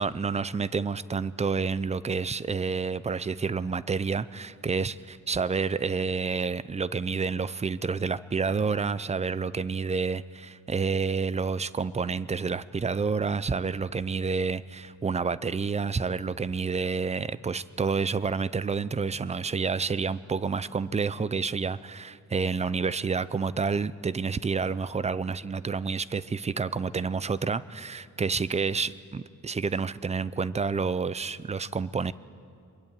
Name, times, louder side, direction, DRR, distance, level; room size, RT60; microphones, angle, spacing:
voice 1, 0.0-32.1, right 5 dB, 20° right, 17 dB, 0.5 m, -29 dB
24.5 x 22.0 x 9.0 m, 2.5 s
wide cardioid pair, 150°, 30 cm